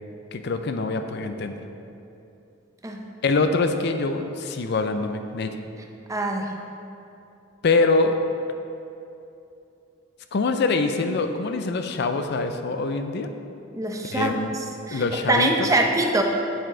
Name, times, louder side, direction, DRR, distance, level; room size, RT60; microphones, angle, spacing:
voice 1, 0.3-1.6 3.2-5.5 7.6-8.1 10.3-13.3 14.1-14.6 14.9-15.7, left 3 dB, 55° left, 7 dB, 0.5 m, -24 dB
voice 2, 6.1-6.5 13.7-16.2, right 2 dB, 15° right, 2 dB, 0.6 m, -24 dB
7.9 x 6.8 x 3.8 m, 2.8 s
head